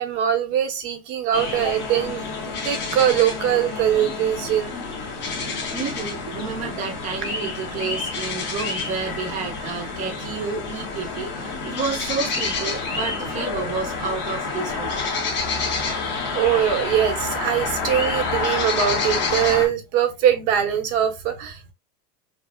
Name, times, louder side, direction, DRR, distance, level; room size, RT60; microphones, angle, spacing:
voice 1, 0.0-4.7 16.3-21.7, right 10 dB, 50° right, 1.1 m, -22 dB
sound 1, 1.3-19.7, left 4 dB, 25° left, 1.2 m, -28 dB
voice 2, 5.7-14.9, right 4 dB, 20° right, 0.6 m, -30 dB
5.6 x 2.3 x 2.2 m
supercardioid pair, 160°, 45 cm